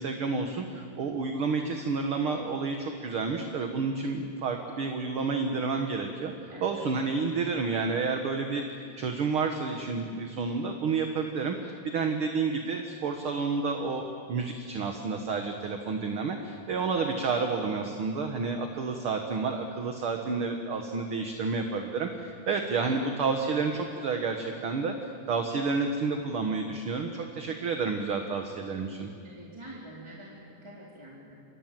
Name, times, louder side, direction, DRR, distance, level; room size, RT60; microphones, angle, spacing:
voice 1, 0.0-8.6 9.0-11.6 11.8-24.9 25.3-29.1, right 4 dB, 50° right, 4 dB, 2.0 m, -30 dB
voice 2, 6.5-7.4 29.2-31.4, right 1 dB, 10° right, -5 dB, 3.7 m, -47 dB
29.0 x 26.0 x 7.7 m, 2.4 s
omnidirectional pair, 3.7 m